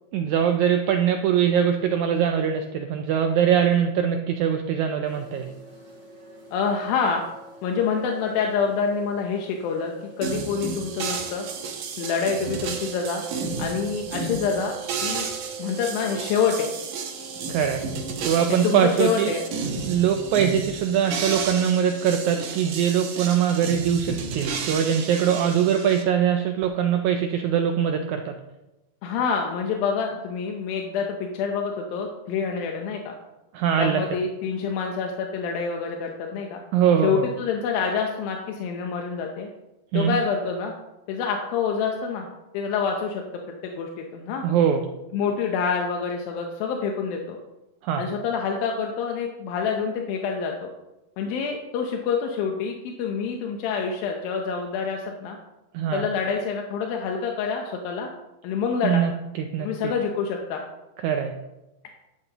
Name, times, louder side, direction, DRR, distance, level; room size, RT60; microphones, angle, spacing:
voice 1, 0.1-5.5 17.5-17.9 18.2-19.3 19.9-28.4 33.5-34.0 36.7-37.3 39.9-40.2 44.4-44.8 47.8-48.0 55.7-56.1 58.8-59.9 61.0-61.3, right 8 dB, 85° right, 5 dB, 1.7 m, -22 dB
sound 1, 5.0-11.7 12.0-16.4 16.6-22.9, right 4 dB, 35° right, 3.4 m, -43 dB
voice 2, 6.5-7.2 7.6-11.5 12.0-13.2 13.6-14.8 15.0-15.3 15.6-16.7 18.5-19.5 29.0-33.1 33.8-36.6 37.0-39.5 39.9-40.7 41.1-42.3 42.5-43.2 43.6-44.5 45.1-47.4 48.0-50.7 51.2-55.4 55.9-58.1 58.4-59.1 59.6-60.6, left 6 dB, 85° left, 2 dB, 2.6 m, -27 dB
sound 2, 10.2-26.0, right 5 dB, 65° right, 2.5 m, -32 dB
11.0 x 10.5 x 2.9 m, 0.98 s
omnidirectional pair, 4.1 m